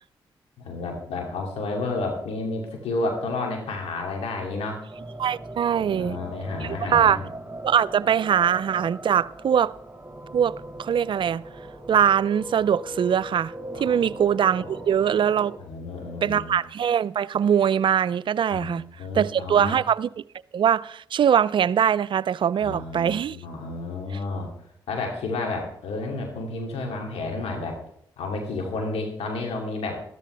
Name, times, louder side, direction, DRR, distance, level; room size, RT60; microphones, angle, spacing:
voice 1, 0.6-4.8 5.8-7.3 13.7-14.1 14.6-14.8 15.6-16.5 18.5-19.8 22.6-24.5 24.9-27.8 28.2-29.9, left 3 dB, 75° left, 2.6 m, -31 dB
sound 1, 4.9-15.6, right 1 dB, 15° right, 4.9 m, -39 dB
voice 2, 5.2-6.2 6.6-7.2 7.6-9.7 10.3-11.4 11.9-13.5 13.8-15.5 16.2-18.8 19.1-20.1 20.5-23.4, right 8 dB, 55° right, 0.4 m, -22 dB
13.5 x 13.0 x 3.3 m
supercardioid pair, 45°, 10 cm